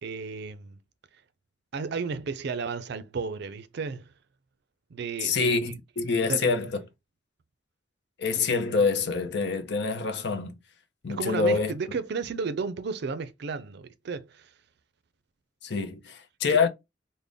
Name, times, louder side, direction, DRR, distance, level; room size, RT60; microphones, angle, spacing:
voice 1, 0.0-0.8 1.7-4.1 4.9-5.8 6.3-6.6 11.1-14.5 16.5-16.6, right 4 dB, 65° right, 0.4 m, -33 dB
voice 2, 5.2-6.8 8.2-10.5 11.0-11.7 15.6-16.7, left 4 dB, 65° left, 0.6 m, -26 dB
3.8 x 2.1 x 3.4 m
head